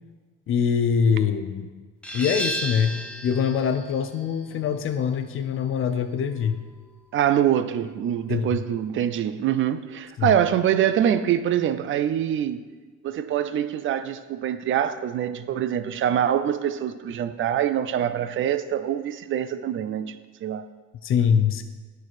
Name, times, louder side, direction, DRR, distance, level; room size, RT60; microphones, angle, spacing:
voice 1, 0.5-1.7 2.1-2.9 3.2-6.6 8.3-8.6 10.2-10.3 21.0-21.6, left 7 dB, 40° left, 0.6 m, -23 dB
sound 1, 2.0-7.4, equal, 5° left, 0.9 m, -35 dB
voice 2, 7.1-12.6 13.0-20.7, right 10 dB, 40° right, 0.4 m, -24 dB
11.0 x 4.7 x 6.0 m
cardioid pair, 175°, 32 cm